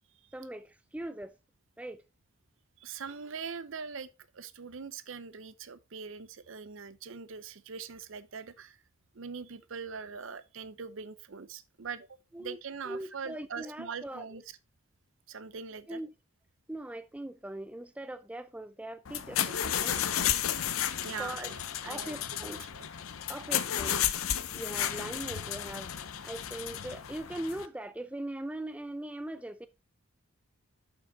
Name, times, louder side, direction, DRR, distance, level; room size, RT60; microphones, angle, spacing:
voice 1, 0.3-1.4 1.8-2.0 12.3-12.6 12.8-14.4 15.9-16.1 16.7-20.0 21.2-21.6 21.8-22.6 23.3-24.1 24.5-25.9 26.2-29.7, right 1 dB, 5° right, 0.3 m, -40 dB
voice 2, 2.8-4.1 4.3-8.8 9.1-14.4 15.3-16.0 21.0-22.2 22.7-22.9, right 5 dB, 65° right, 0.6 m, -42 dB
sound 1, 19.1-27.7, left 10 dB, 75° left, 0.6 m, -33 dB
6.8 x 5.9 x 4.0 m
head